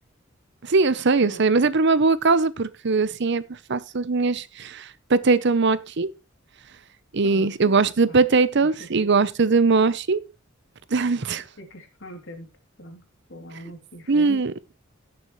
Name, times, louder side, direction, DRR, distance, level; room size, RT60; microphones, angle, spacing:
voice 1, 0.6-3.4 3.7-6.1 7.1-10.2 10.9-11.4 14.1-14.5, right 4 dB, 60° right, 0.7 m, -20 dB
voice 2, 7.2-7.7 8.1-8.3 8.5-9.1 11.6-12.5 12.8-14.4, equal, 60° left, 2.9 m, -42 dB
16.5 x 7.1 x 3.1 m
head